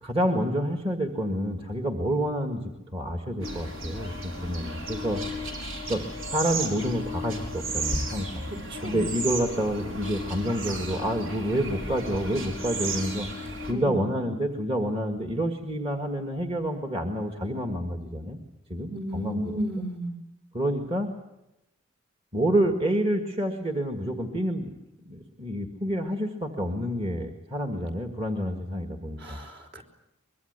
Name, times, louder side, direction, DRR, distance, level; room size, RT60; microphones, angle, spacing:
voice 1, 0.0-5.2 5.9-6.0 6.3-8.4 8.8-13.3 13.7-18.4 18.7-19.5 20.5-21.1 22.3-24.7 25.0-29.4, equal, 25° right, 4 dB, 1.8 m, -28 dB
sound 1, 3.4-13.7, right 1 dB, 70° right, 4.8 m, -34 dB
voice 2, 13.7-14.1 18.9-20.1 29.2-29.8, right 1 dB, 50° right, 2 dB, 4.1 m, -33 dB
24.0 x 22.5 x 8.1 m, 0.90 s
head